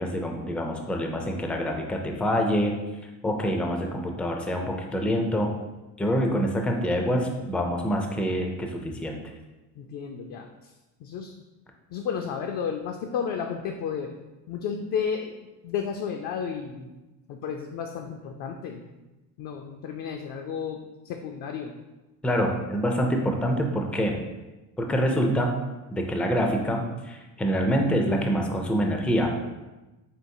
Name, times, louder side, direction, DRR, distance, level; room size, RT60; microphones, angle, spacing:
voice 1, 0.0-2.8 3.2-5.5 6.0-9.2 22.2-24.2 24.8-25.6 25.9-29.3, equal, 5° left, 2 dB, 0.3 m, -26 dB
voice 2, 9.7-10.7 11.0-11.3 11.9-14.1 14.5-16.9 17.3-18.8 19.4-21.7, left 7 dB, 60° left, 3 dB, 0.5 m, -32 dB
4.5 x 3.3 x 2.6 m, 1.1 s
supercardioid pair, 100°, 38 cm